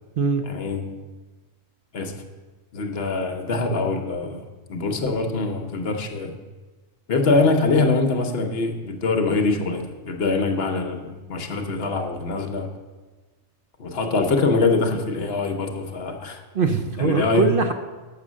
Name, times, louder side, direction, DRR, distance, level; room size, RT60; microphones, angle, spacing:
voice 1, 0.4-0.9 1.9-2.2 2.7-4.4 4.7-6.3 7.1-12.7 13.8-16.4 17.0-17.5, left 3 dB, 55° left, 5 dB, 0.9 m, -23 dB
voice 2, 16.5-17.7, right 4 dB, 55° right, 6 dB, 0.6 m, -21 dB
6.8 x 6.6 x 6.2 m, 1.3 s
omnidirectional pair, 1.3 m